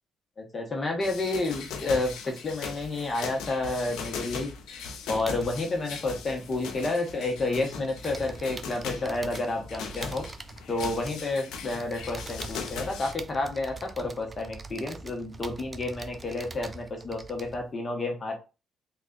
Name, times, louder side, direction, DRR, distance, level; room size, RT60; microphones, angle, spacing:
voice 1, 0.4-4.5 5.1-10.3 10.7-18.4, left 2 dB, 35° left, 2 dB, 0.9 m, -30 dB
sound 1, 1.0-13.1, left 5 dB, 85° left, 0.6 m, -39 dB
sound 2, 5.1-7.3 7.6-17.7, right 3 dB, 25° right, 0.4 m, -44 dB
3.3 x 2.3 x 3.8 m, 0.30 s
cardioid pair, 90°, 0 cm